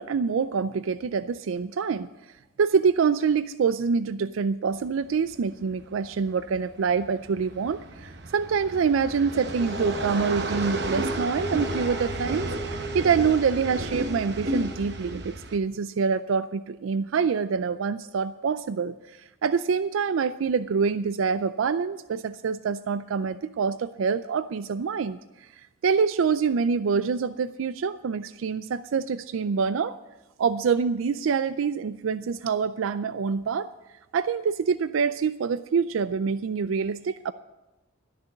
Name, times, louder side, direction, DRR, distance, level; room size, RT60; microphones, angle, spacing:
voice 1, 0.0-2.1 2.6-30.0 30.4-33.7 34.1-37.3, right 5 dB, 85° right, 13 dB, 0.4 m, -26 dB
sound 1, 4.7-15.6, right 1 dB, 55° right, 1.0 m, -33 dB
sound 2, 9.6-15.2, right 1 dB, ahead, 2.2 m, -38 dB
13.0 x 6.8 x 7.8 m, 1.0 s
head